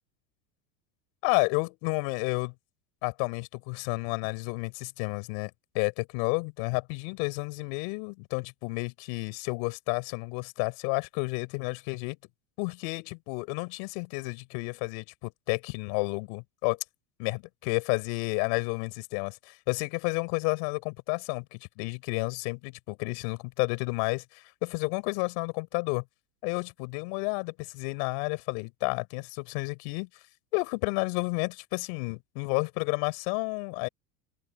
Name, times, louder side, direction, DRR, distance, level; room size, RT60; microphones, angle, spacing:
voice 1, 1.2-2.5 3.0-12.2 12.6-16.8 17.2-26.0 26.4-30.1 30.5-33.9, left 35 dB, 65° left, 6.9 m, -31 dB
open air
supercardioid pair, 145°, 45 cm